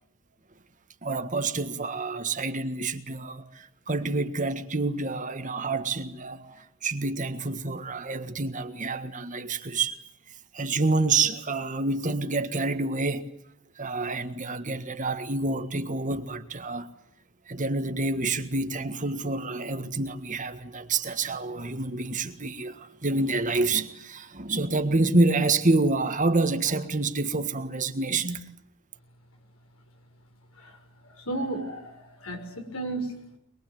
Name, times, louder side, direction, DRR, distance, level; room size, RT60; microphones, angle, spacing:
voice 1, 1.0-10.0 10.5-13.3 13.8-16.9 17.5-28.4, right 3 dB, 35° right, 1.6 m, -28 dB
voice 2, 31.1-33.4, right 2 dB, 80° left, 6.3 m, -34 dB
23.5 x 22.5 x 9.3 m
head